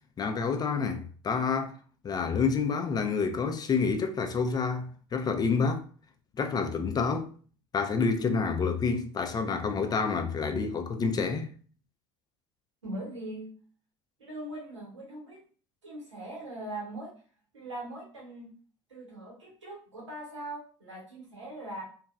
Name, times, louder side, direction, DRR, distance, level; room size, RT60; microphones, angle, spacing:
voice 1, 0.2-1.7 2.0-5.8 6.4-7.3 7.7-11.5, left 5 dB, 25° left, 0.4 m, -28 dB
voice 2, 12.8-13.5 14.2-15.4 15.8-17.1 17.5-18.5 18.9-21.8, right 1 dB, 90° right, 1.0 m, -41 dB
2.7 x 2.2 x 2.2 m
hypercardioid pair, 65°, 15 cm